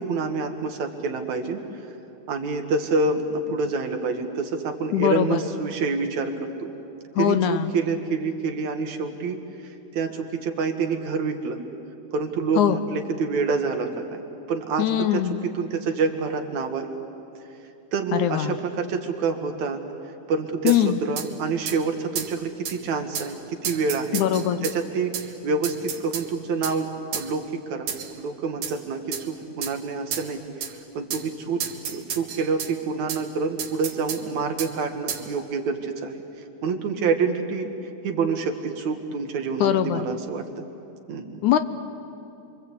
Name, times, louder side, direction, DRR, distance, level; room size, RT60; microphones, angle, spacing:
voice 1, 0.0-1.6 2.3-6.7 7.2-11.6 12.1-14.2 14.5-15.3 15.5-16.9 17.9-19.8 20.3-24.2 24.6-31.6 31.9-36.2 36.6-37.8 38.0-40.4 41.1-41.4, right 4 dB, 65° right, 4 dB, 2.8 m, -27 dB
voice 2, 4.9-5.4 7.2-7.7 12.6-12.8 14.8-15.4 18.1-18.6 20.6-21.0 24.1-24.6 39.6-40.0 41.4-41.6, left 11 dB, 75° left, 10 dB, 2.2 m, -21 dB
sound 1, 20.7-20.8 21.2-21.3 21.7-21.8 22.2-22.3 22.7-22.8 23.2-23.3 23.7-24.8 25.1-25.3 25.6-26.3 26.6-26.8 27.1-27.3 27.9-28.2 28.6-28.8 29.1-29.3 29.6-29.8 30.1-30.3 30.6-30.7 31.1-31.3 31.6-32.7 33.1-33.2 33.6-34.2 34.6-34.7 35.1-35.3, right 8 dB, 85° right, 3.3 m, -31 dB
29.5 x 23.5 x 8.5 m, 2.7 s
omnidirectional pair, 3.7 m